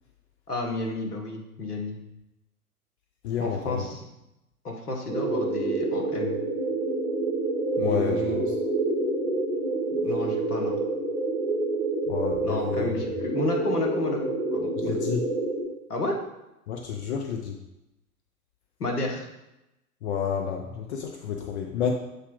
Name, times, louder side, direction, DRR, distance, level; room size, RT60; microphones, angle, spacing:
voice 1, 0.5-2.0 3.4-4.1 4.6-6.4 7.8-8.4 10.0-10.8 12.4-15.0 15.9-16.2 18.8-19.3, left 2 dB, 80° left, 1 dB, 1.6 m, -31 dB
voice 2, 3.2-3.9 7.8-8.5 12.1-12.9 14.8-15.2 16.7-17.6 20.0-21.9, left 7 dB, 45° left, 2 dB, 0.8 m, -30 dB
sound 1, 5.1-15.6, right 2 dB, 10° right, 2.0 m, -27 dB
6.4 x 4.3 x 3.8 m, 0.92 s
figure-of-eight pair, 110°, 45 cm